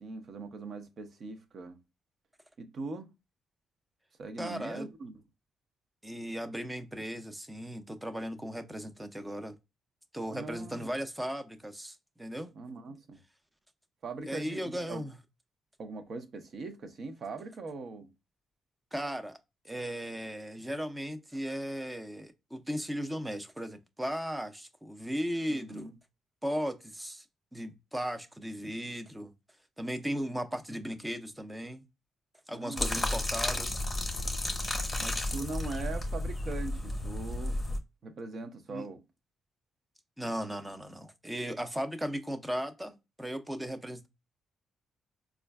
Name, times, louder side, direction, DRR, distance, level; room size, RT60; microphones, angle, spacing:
voice 1, 0.0-1.8 2.6-3.1 4.2-5.1 10.3-10.8 12.5-13.2 14.0-15.0 15.8-18.1 25.5-25.9 32.5-33.1 35.0-39.0, right 3 dB, 55° right, 0.7 m, -41 dB
voice 2, 4.4-4.9 6.0-9.6 10.1-12.5 14.2-15.1 18.9-19.4 19.6-25.9 26.4-27.3 27.5-29.3 29.8-31.8 32.5-33.8 38.7-38.9 40.2-44.1, equal, 10° right, 0.5 m, -36 dB
sound 1, 32.8-37.8, left 1 dB, 20° left, 0.9 m, -32 dB
4.4 x 2.4 x 2.2 m
cardioid pair, 110°, 0 cm